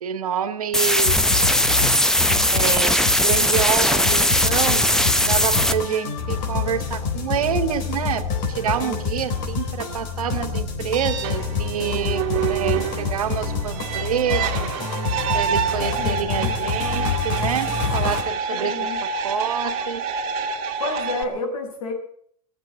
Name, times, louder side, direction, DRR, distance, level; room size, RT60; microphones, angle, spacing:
voice 1, 0.0-1.1 2.2-4.9 5.2-14.7 15.3-20.1, right 9 dB, 90° right, 10 dB, 1.6 m, -27 dB
sound 1, 0.7-5.7, left 1 dB, 5° left, 0.9 m, -19 dB
sound 2, 1.0-18.2, left 5 dB, 45° left, 3.7 m, -27 dB
sound 3, 10.9-21.2, right 6 dB, 50° right, 2.3 m, -27 dB
voice 2, 16.0-16.5 18.5-19.0 20.8-21.9, left 2 dB, 75° left, 4 dB, 5.9 m, -30 dB
19.0 x 7.6 x 8.6 m, 0.65 s
hypercardioid pair, 130°, 18 cm